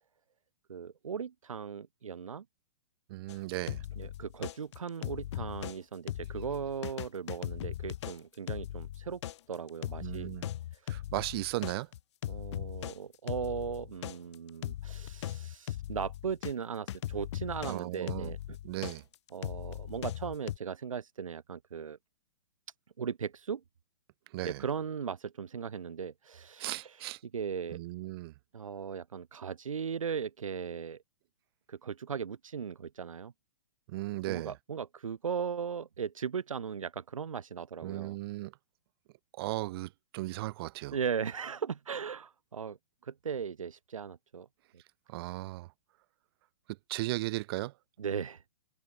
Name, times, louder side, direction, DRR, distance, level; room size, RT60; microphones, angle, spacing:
voice 1, 0.7-2.4 4.0-9.2 9.5-10.3 10.7-11.0 12.3-18.6 19.3-22.0 23.0-23.6 24.4-27.0 27.3-27.8 28.5-31.0 31.7-33.3 34.3-38.2 40.9-42.8 43.0-44.5 48.0-48.4, right 7 dB, 85° right, 1.1 m, -38 dB
voice 2, 3.1-3.8 10.0-10.5 10.9-11.9 17.7-18.3 18.6-19.0 24.3-24.6 26.6-27.2 27.7-28.3 33.9-34.5 37.8-38.5 39.3-41.0 45.1-45.7 46.7-47.7, right 18 dB, 45° right, 2.6 m, -36 dB
sound 1, 3.3-5.8 6.1-16.5 16.9-20.6, left 13 dB, 55° left, 4.6 m, -39 dB
hypercardioid pair, 130°, 17 cm